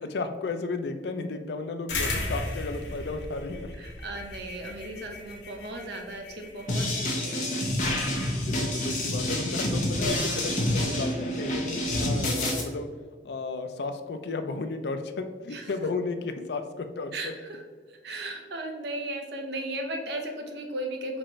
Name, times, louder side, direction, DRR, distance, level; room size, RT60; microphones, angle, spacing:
voice 1, 0.0-3.7 8.5-12.9 13.2-17.3, left 3 dB, 70° left, 8 dB, 0.4 m, -33 dB
sound 1, 1.9-6.8, left 2 dB, 90° left, 0.9 m, -35 dB
voice 2, 3.8-7.6 15.5-15.7 17.1-17.6 17.9-21.2, right 1 dB, 70° right, 3 dB, 0.7 m, -36 dB
sound 2, 6.7-12.6, left 1 dB, 45° left, 0.8 m, -28 dB
4.6 x 2.5 x 4.2 m, 1.5 s
head